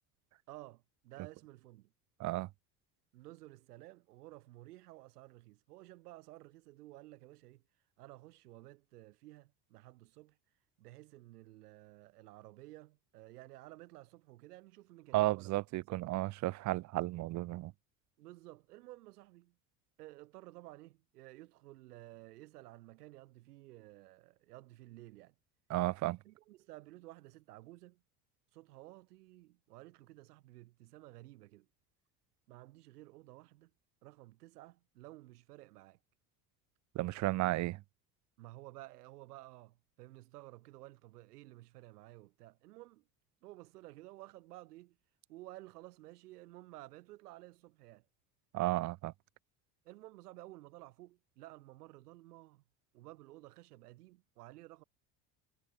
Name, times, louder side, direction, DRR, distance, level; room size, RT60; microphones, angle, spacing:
voice 1, 0.5-1.9 3.1-7.6 8.0-10.4 10.8-15.5 15.9-16.2 18.2-19.6 20.0-25.3 26.2-28.0 28.5-31.7 32.5-33.7 34.0-36.0 38.4-43.0 43.4-45.0 45.3-48.1 49.8-52.6 52.9-54.8, right 18 dB, 75° right, 7.4 m, -54 dB
voice 2, 15.1-17.7 25.7-26.2 37.0-37.8 48.5-49.1, right 18 dB, 40° right, 0.5 m, -33 dB
hypercardioid pair, 70°, 46 cm